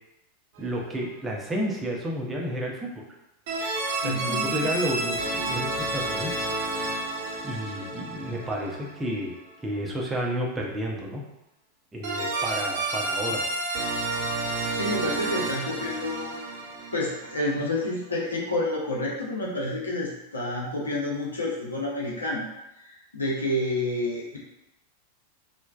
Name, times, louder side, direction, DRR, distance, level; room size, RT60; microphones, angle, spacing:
voice 1, 0.6-3.0 4.0-6.5 7.4-9.4 9.6-11.2 11.9-13.4, equal, 10° right, -2 dB, 0.5 m, -31 dB
sound 1, 0.6-1.0 3.5-9.3 12.0-17.9, right 2 dB, 55° right, 0.6 m, -30 dB
voice 2, 4.0-4.7 14.6-16.4 16.9-22.4 22.8-24.4, left 1 dB, 80° left, -3 dB, 0.6 m, -29 dB
3.1 x 2.0 x 2.3 m, 0.89 s
figure-of-eight pair, 90°, 0 cm